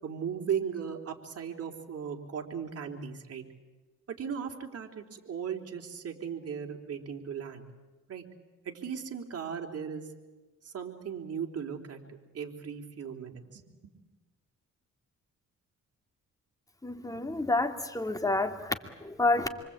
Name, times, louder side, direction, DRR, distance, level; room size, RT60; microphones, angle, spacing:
voice 1, 0.0-3.4 4.1-7.6 8.1-8.2 8.7-10.1 10.6-12.0 12.3-13.6, right 7 dB, 50° right, 3 dB, 3.6 m, -37 dB
voice 2, 16.8-19.5, left 2 dB, 10° left, 6 dB, 2.6 m, -29 dB
26.5 x 24.5 x 8.8 m, 1.2 s
cardioid pair, 90°, 30 cm